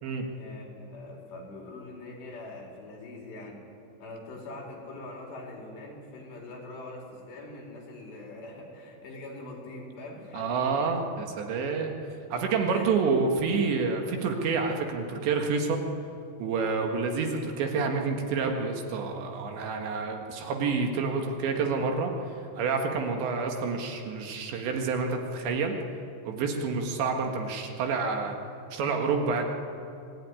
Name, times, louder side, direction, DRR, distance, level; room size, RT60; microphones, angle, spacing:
voice 1, 0.3-3.6 4.0-11.0 12.7-13.0, left 2 dB, 60° left, 0 dB, 5.8 m, -43 dB
voice 2, 10.3-11.9 12.3-15.8 16.4-22.1 22.6-25.8 26.3-28.4 28.7-29.5, right 4 dB, 70° right, 3 dB, 3.8 m, -28 dB
25.5 x 17.0 x 9.7 m, 2.6 s
omnidirectional pair, 5.7 m